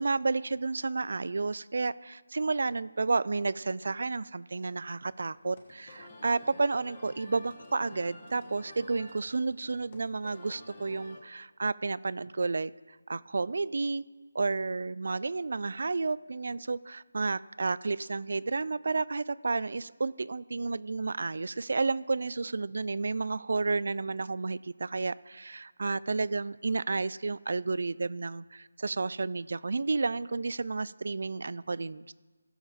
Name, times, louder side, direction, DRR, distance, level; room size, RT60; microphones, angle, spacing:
voice 1, 0.0-12.7 13.1-14.0 14.3-32.1, right 3 dB, 55° right, 19 dB, 0.3 m, -31 dB
sound 1, 5.0-11.2, left 1 dB, 30° left, 1.6 m, -50 dB
17.5 x 7.1 x 3.6 m, 1.4 s
figure-of-eight pair, 175°, 0 cm